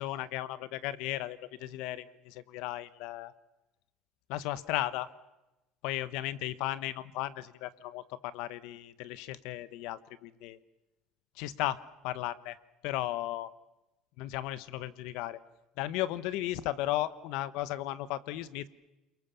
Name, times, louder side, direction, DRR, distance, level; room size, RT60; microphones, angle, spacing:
voice 1, 0.0-3.3 4.3-5.1 5.8-10.6 11.4-11.8 12.0-12.6 12.8-13.5 14.2-15.4 15.8-18.7, left 15 dB, 75° left, 16 dB, 1.1 m, -35 dB
29.0 x 22.5 x 7.1 m, 0.99 s
cardioid pair, 120°, 0 cm